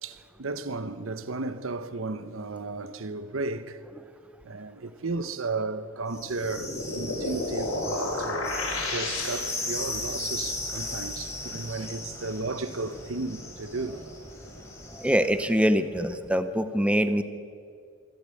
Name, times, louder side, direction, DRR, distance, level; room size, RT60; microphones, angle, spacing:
voice 1, 0.0-3.8 4.4-8.5 8.8-14.0, right 3 dB, 80° right, 1.0 m, -34 dB
sound 1, 6.1-15.5, left 2 dB, 15° left, 4.2 m, -37 dB
sound 2, 6.2-9.8, left 2 dB, 80° left, 6.5 m, -32 dB
voice 2, 15.0-17.2, equal, 5° right, 0.7 m, -24 dB
25.5 x 12.0 x 9.1 m
head